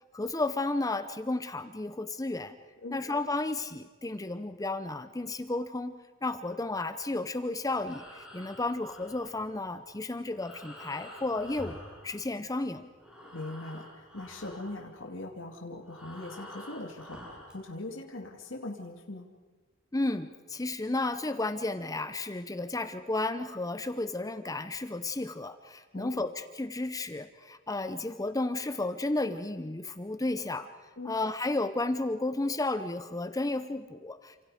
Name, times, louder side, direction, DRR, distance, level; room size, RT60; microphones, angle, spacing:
voice 1, 0.1-2.6 2.9-5.9 6.2-12.9 19.9-30.7 31.0-34.4, left 2 dB, 15° left, 10 dB, 0.7 m, -33 dB
Breathing, 7.7-12.7 12.9-17.6, equal, 5° right, 5.9 m, -49 dB
voice 2, 13.3-19.4 25.9-26.3 31.0-31.2, left 2 dB, 70° left, 1 dB, 2.5 m, -41 dB
29.0 x 26.5 x 5.1 m, 1.3 s
head